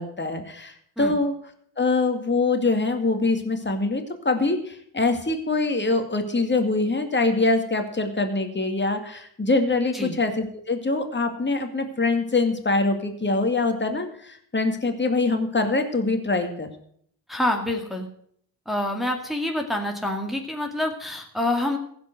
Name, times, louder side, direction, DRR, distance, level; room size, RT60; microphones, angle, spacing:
voice 1, 0.0-1.3 1.8-16.7, left 3 dB, 25° left, 6 dB, 2.3 m, -24 dB
voice 2, 17.3-18.1 18.7-21.8, left 1 dB, ahead, 2 dB, 2.1 m, -27 dB
15.5 x 5.3 x 8.1 m, 0.65 s
supercardioid pair, 55°, 45 cm